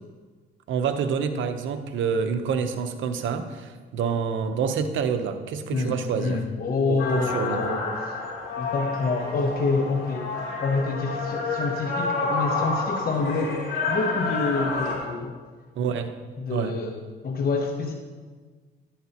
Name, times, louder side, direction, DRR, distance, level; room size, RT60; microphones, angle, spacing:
voice 1, 0.7-6.4 6.9-7.6 15.8-16.2 16.5-16.8, right 6 dB, 75° right, 8 dB, 0.8 m, -27 dB
voice 2, 5.7-8.2 8.6-10.3 10.6-13.6 13.9-15.4 16.4-17.9, left 3 dB, 50° left, 3 dB, 0.9 m, -27 dB
sound 1, 7.0-15.0, left 3 dB, 90° left, 3.1 m, -29 dB
11.5 x 10.0 x 2.9 m, 1.4 s
cardioid pair, 90°, 20 cm